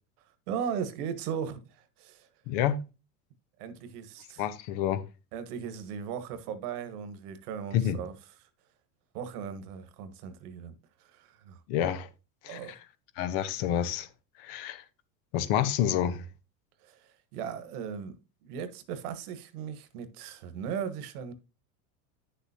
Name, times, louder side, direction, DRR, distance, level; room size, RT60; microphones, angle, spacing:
voice 1, 0.5-2.3 3.6-4.4 5.3-8.1 9.1-10.7 11.0-11.6 12.4-12.7 16.8-18.2 18.4-21.3, right 7 dB, 65° right, 1.5 m, -37 dB
voice 2, 2.5-2.8 4.4-5.0 7.7-8.0 11.7-12.1 12.4-12.8 13.2-14.1 14.4-14.8 15.3-16.2, left 10 dB, 60° left, 1.2 m, -28 dB
9.9 x 6.9 x 2.8 m
hypercardioid pair, 95°, 48 cm